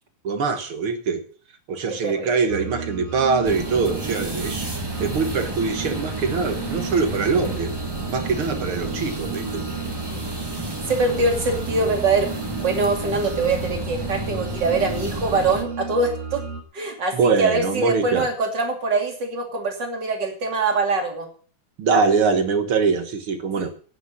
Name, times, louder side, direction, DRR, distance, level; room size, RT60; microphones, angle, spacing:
voice 1, 0.2-1.2 1.7-4.7 5.0-7.7 8.1-9.7 17.1-18.3 21.8-23.7, right 4 dB, 50° right, 8 dB, 1.9 m, -23 dB
voice 2, 2.0-2.3 10.9-16.4 16.7-21.3 23.6-23.7, right 3 dB, 35° right, 2 dB, 3.2 m, -23 dB
sound 1, 2.5-16.6, right 5 dB, 90° right, 3.5 m, -34 dB
sound 2, 3.4-15.6, right 1 dB, 15° right, 0.7 m, -32 dB
11.5 x 9.3 x 7.4 m, 0.42 s
omnidirectional pair, 3.6 m